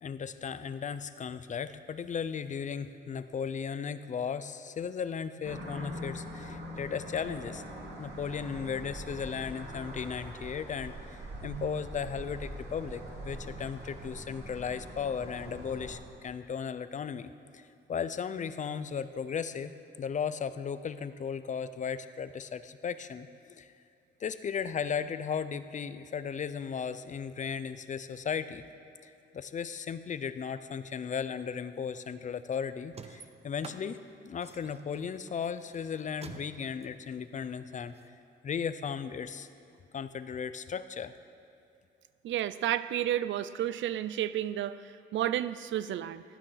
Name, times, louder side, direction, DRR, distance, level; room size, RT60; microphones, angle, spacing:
voice 1, 0.0-7.6 8.0-19.7 20.0-23.7 24.2-28.6 29.0-37.9 38.4-39.5 39.9-41.1, left 7 dB, 40° left, 13 dB, 0.5 m, -36 dB
sound 1, 5.4-16.0, equal, 60° right, 3.2 m, -43 dB
voice 2, 11.4-11.8 42.2-46.2, right 12 dB, 80° right, 15 dB, 0.5 m, -32 dB
sound 2, 32.9-38.1, right 5 dB, 30° right, 0.7 m, -50 dB
16.0 x 9.1 x 5.7 m, 2.6 s
cardioid pair, 115°, 20 cm